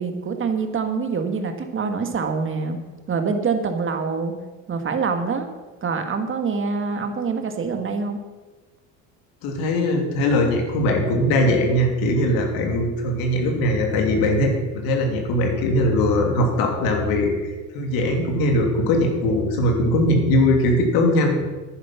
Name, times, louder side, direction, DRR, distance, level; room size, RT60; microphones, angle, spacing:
voice 1, 0.0-2.8 3.1-4.4 4.7-5.5 5.8-8.2, right 5 dB, 35° right, 6 dB, 1.8 m, -25 dB
voice 2, 9.4-17.5 17.7-21.4, left 1 dB, 70° left, 2 dB, 3.0 m, -20 dB
10.5 x 10.0 x 5.9 m, 1.2 s
supercardioid pair, 95°, 37 cm